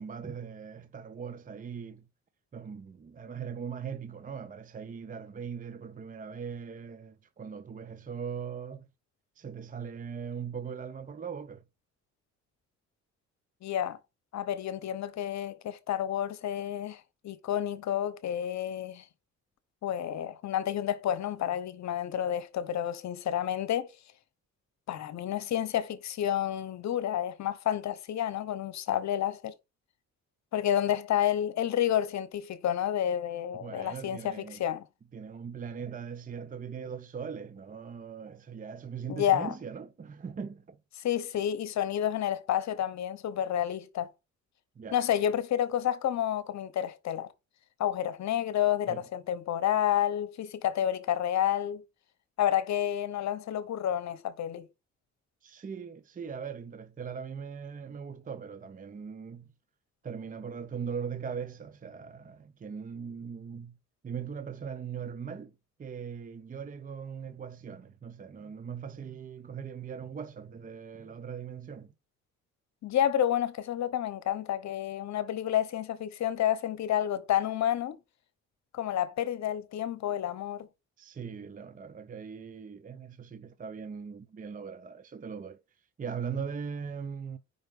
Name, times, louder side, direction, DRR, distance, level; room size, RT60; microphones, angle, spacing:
voice 1, 0.0-2.1 2.5-8.9 9.4-11.6 33.6-34.6 35.1-40.8 44.8-45.0 48.9-49.0 55.4-59.5 60.0-63.8 64.0-71.9 81.0-87.4, right 6 dB, 25° right, 0.6 m, -40 dB
voice 2, 13.6-14.0 14.3-19.0 19.8-23.9 24.9-29.5 30.5-34.8 39.1-39.5 41.0-44.1 44.9-47.3 47.8-51.8 52.4-54.7 72.8-78.0 78.7-80.7, left 10 dB, 65° left, 0.9 m, -30 dB
5.4 x 4.3 x 5.3 m
cardioid pair, 90°, 30 cm